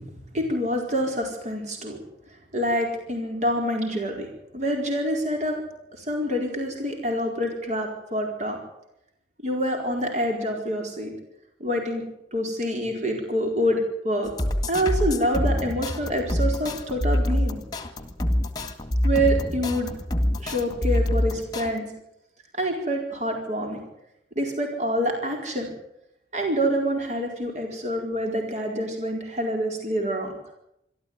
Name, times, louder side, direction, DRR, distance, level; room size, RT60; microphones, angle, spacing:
voice 1, 0.3-2.0 2.5-4.3 4.5-5.6 5.9-8.6 9.4-11.1 11.6-14.3 14.7-17.6 19.0-19.9 20.4-21.9 22.5-23.8 24.3-25.7 26.3-30.3, equal, 40° right, 2 dB, 4.5 m, -26 dB
sound 1, 14.2-21.7, left 1 dB, 20° left, 1.9 m, -25 dB
25.5 x 13.0 x 9.6 m, 0.82 s
head